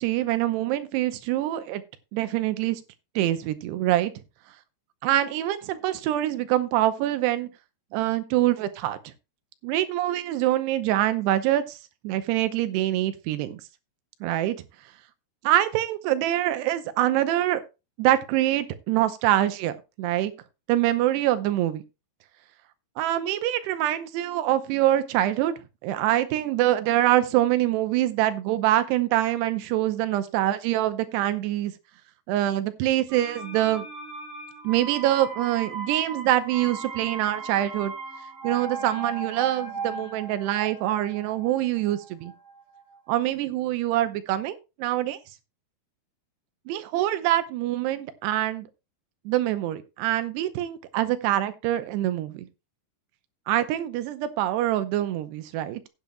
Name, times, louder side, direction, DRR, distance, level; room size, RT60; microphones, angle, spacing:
voice 1, 0.0-1.8 2.1-2.8 3.2-4.1 5.0-7.5 7.9-9.0 9.6-11.8 12.0-13.6 14.2-14.6 15.4-17.6 18.0-20.3 20.7-21.8 23.0-25.5 25.8-31.7 32.3-33.9 34.6-37.9 38.4-42.3 43.1-45.2 46.7-48.7 49.3-52.5 53.5-55.8, right 13 dB, 80° right, 2.9 m, -25 dB
sound 1, 33.1-42.8 43.1-43.2, right 4 dB, 35° right, 2.6 m, -37 dB
15.5 x 9.1 x 2.2 m
omnidirectional pair, 4.8 m